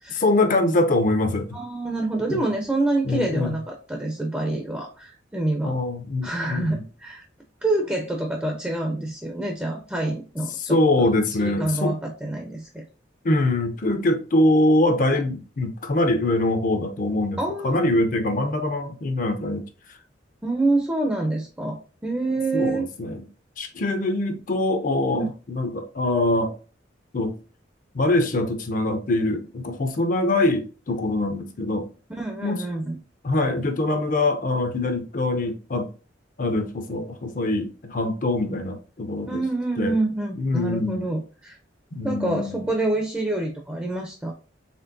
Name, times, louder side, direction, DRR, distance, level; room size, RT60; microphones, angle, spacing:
voice 1, 0.1-1.6 2.3-2.4 3.0-3.6 5.6-6.8 10.6-12.0 13.2-17.4 17.6-19.6 22.5-23.2 23.6-26.5 27.1-27.4 27.9-31.9 32.4-32.6 33.2-35.9 36.4-39.4 39.8-39.9 40.4-41.1 41.9-42.7, left 2 dB, 45° left, 0.5 m, -23 dB
voice 2, 1.5-5.7 6.2-7.2 7.6-10.8 11.1-11.2 11.4-12.8 17.4-17.8 20.4-22.9 25.1-25.3 32.2-33.0 39.3-41.6 42.0-44.3, right 2 dB, 10° right, 0.4 m, -27 dB
4.3 x 3.3 x 2.6 m
head